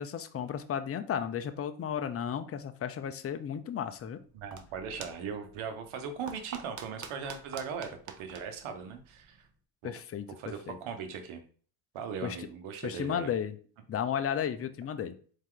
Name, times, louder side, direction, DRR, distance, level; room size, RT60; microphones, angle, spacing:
voice 1, 0.0-4.2 9.8-10.8 12.2-12.4 12.8-13.6 13.9-15.2, left 8 dB, 30° left, 9 dB, 0.5 m, -34 dB
sound 1, 4.2-9.5, right 6 dB, 35° right, 0.8 m, -48 dB
voice 2, 4.3-7.9 8.2-9.5 9.8-9.9 10.4-11.4 11.9-13.3, right 6 dB, 70° right, 7 dB, 1.1 m, -39 dB
4.3 x 2.8 x 3.8 m, 0.43 s
supercardioid pair, 80°, 50 cm